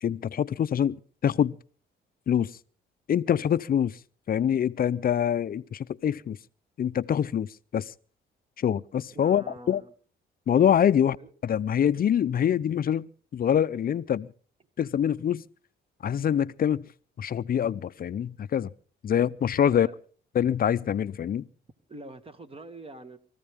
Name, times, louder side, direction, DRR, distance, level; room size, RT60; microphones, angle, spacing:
voice 1, 0.0-1.0 1.2-1.6 2.3-2.6 3.1-4.0 4.3-6.4 6.8-7.9 8.6-9.8 10.5-11.2 11.4-14.3 14.8-15.4 16.0-16.9 17.2-18.7 19.0-19.9 20.3-21.5, left 9 dB, 45° left, 0.6 m, -25 dB
voice 2, 9.1-9.9 11.0-11.3 19.7-20.0 21.9-23.2, right 2 dB, 30° right, 2.1 m, -44 dB
24.0 x 15.0 x 3.6 m
cardioid pair, 90°, 20 cm